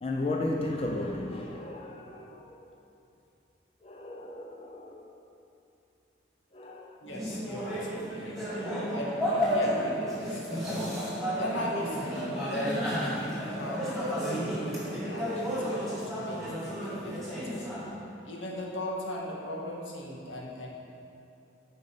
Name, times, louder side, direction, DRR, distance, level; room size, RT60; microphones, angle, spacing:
voice 1, 0.0-2.6 3.8-5.2 6.5-7.0 7.7-7.9 8.6-8.9, left 2 dB, 30° left, 1 dB, 0.5 m, -35 dB
voice 2, 7.0-10.9 11.3-17.7 18.3-20.7, left 1 dB, 85° left, -2 dB, 1.8 m, -38 dB
sound 1, 7.1-17.9, equal, ahead, 2.4 m, -32 dB
13.5 x 5.3 x 5.7 m, 2.7 s
head